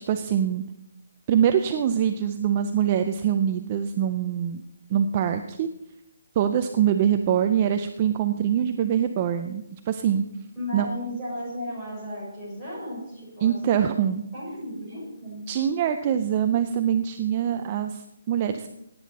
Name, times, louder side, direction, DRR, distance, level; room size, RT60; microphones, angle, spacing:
voice 1, 0.1-0.6 1.3-4.6 4.9-5.7 6.4-10.2 10.7-10.9 13.4-14.2 15.5-18.7, right 9 dB, 25° right, 8 dB, 0.4 m, -24 dB
voice 2, 10.6-13.8 14.3-15.4, left 1 dB, 10° left, -8 dB, 5.2 m, -35 dB
17.5 x 9.2 x 4.1 m, 0.84 s
hypercardioid pair, 175°, 0 cm